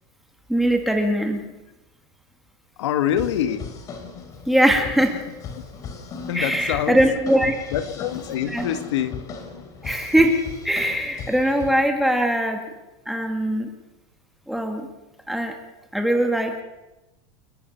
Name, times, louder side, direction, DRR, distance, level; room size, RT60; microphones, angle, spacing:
voice 1, 0.5-1.4 4.5-5.1 6.3-7.5 8.5-8.6 9.8-10.4 10.6-12.6 13.1-13.7 14.5-14.9 15.3-15.5 15.9-16.6, right 1 dB, ahead, 3 dB, 1.9 m, -21 dB
voice 2, 2.8-3.7 6.3-7.0 7.7-9.2 9.5-9.6 13.1-13.3, left 10 dB, 90° left, 10 dB, 2.0 m, -25 dB
sound 1, 3.1-11.8, left 5 dB, 25° left, 2.8 m, -37 dB
29.5 x 12.5 x 7.1 m, 1.0 s
supercardioid pair, 170°, 15 cm